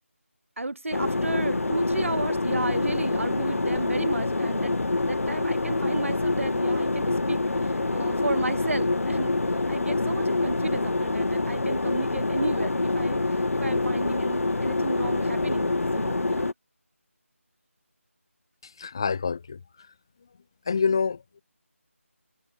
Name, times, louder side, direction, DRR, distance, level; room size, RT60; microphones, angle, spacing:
voice 1, 0.6-4.7 5.0-9.4 9.7-13.2 13.5-16.5, right 2 dB, 65° right, 3.1 m, -33 dB
sound 1, 0.9-16.5, left 2 dB, 75° left, 0.6 m, -26 dB
voice 2, 18.6-19.6 20.7-21.4, left 5 dB, 20° left, 0.5 m, -27 dB
figure-of-eight pair, 170°, 8 cm